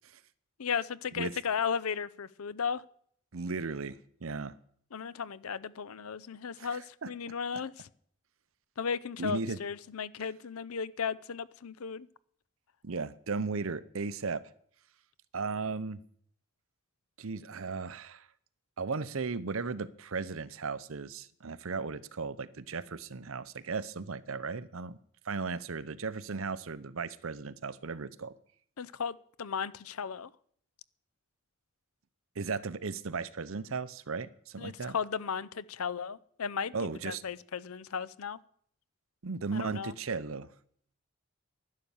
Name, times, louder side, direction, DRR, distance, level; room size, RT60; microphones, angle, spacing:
voice 1, 0.6-2.8 4.9-7.9 8.8-12.1 28.8-30.3 34.6-36.7 37.0-38.4 39.5-39.9, left 6 dB, 85° left, 0.6 m, -35 dB
voice 2, 3.3-4.6 6.6-7.1 9.2-9.6 12.8-14.4 15.3-16.0 17.2-18.3 18.8-25.0 25.2-28.3 32.4-35.0 36.7-37.2 39.2-40.5, right 4 dB, 70° right, 0.7 m, -36 dB
11.5 x 11.0 x 7.1 m
head